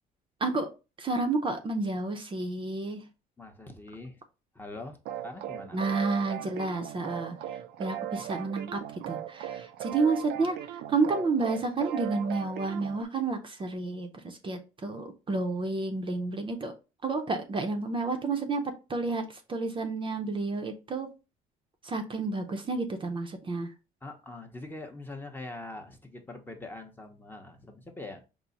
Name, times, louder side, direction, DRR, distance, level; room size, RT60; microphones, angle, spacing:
voice 1, 1.0-3.0 5.7-8.8 9.1-16.7 17.0-21.1 21.8-23.7, right 3 dB, 30° right, 5 dB, 0.6 m, -30 dB
voice 2, 3.4-4.2 4.5-5.9 24.0-28.2, left 2 dB, 10° left, 3 dB, 0.7 m, -43 dB
sound 1, 5.0-13.0, right 11 dB, 80° right, 0.4 m, -38 dB
4.6 x 2.0 x 3.9 m, 0.30 s
cardioid pair, 110°, 17 cm